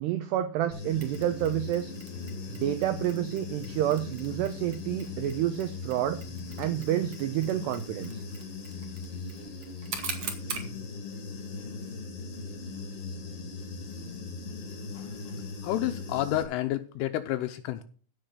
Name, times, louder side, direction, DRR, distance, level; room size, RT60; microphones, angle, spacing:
voice 1, 0.0-1.9 2.5-6.2 6.6-8.2, right 12 dB, 80° right, 10 dB, 2.4 m, -29 dB
Human voice / Buzz, 0.7-16.4, left 4 dB, 40° left, 2.3 m, -39 dB
Mechanisms, 1.0-10.7, right 6 dB, 50° right, 2.1 m, -44 dB
voice 2, 15.6-17.8, left 13 dB, 80° left, 8 dB, 3.2 m, -30 dB
15.5 x 6.3 x 6.5 m, 0.42 s
omnidirectional pair, 5.8 m